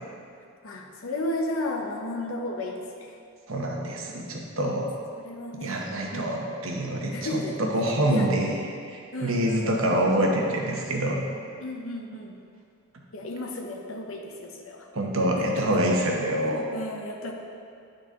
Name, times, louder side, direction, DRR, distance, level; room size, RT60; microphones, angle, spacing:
voice 1, 0.6-3.1 5.2-6.6 7.1-7.6 7.9-8.3 9.1-10.0 11.6-12.3 13.1-14.9 15.4-15.6 16.4-17.3, left 1 dB, 65° left, 1 dB, 0.8 m, -34 dB
voice 2, 3.5-4.9 5.6-8.5 8.9-11.2 14.9-16.6, right 1 dB, 65° right, 0 dB, 0.9 m, -26 dB
10.5 x 4.0 x 3.6 m, 2.3 s
head